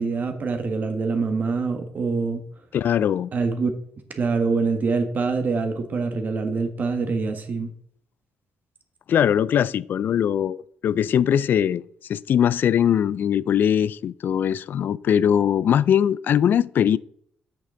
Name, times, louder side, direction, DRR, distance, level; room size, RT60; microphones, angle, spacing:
voice 1, 0.0-2.4 3.3-3.7 4.1-7.7, right 4 dB, 50° right, 1.6 m, -25 dB
voice 2, 2.7-3.3 9.1-11.8 12.1-17.0, left 9 dB, 65° left, 0.3 m, -21 dB
8.2 x 6.7 x 3.8 m
supercardioid pair, 65°, 4 cm